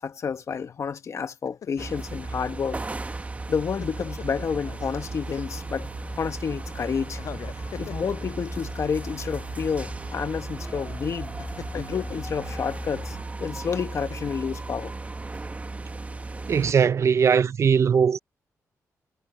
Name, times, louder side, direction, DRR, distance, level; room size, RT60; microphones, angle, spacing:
voice 1, 0.0-2.8 3.5-5.9 6.2-7.2 7.8-11.4 11.7-14.9, left 6 dB, 55° left, 1.4 m, -30 dB
sound 1, 1.5-2.2 3.4-4.9 5.2-5.9 7.1-8.7 9.3-9.5 11.4-12.3 13.9-14.6 15.0-15.2, left 8 dB, 70° left, 7.3 m, -42 dB
sound 2, 1.8-16.7, right 3 dB, 25° right, 1.1 m, -35 dB
sound 3, 3.8-13.2, left 10 dB, 90° left, 5.3 m, -47 dB
voice 2, 16.5-18.2, right 7 dB, 50° right, 0.5 m, -20 dB
cardioid pair, 100°, 6 cm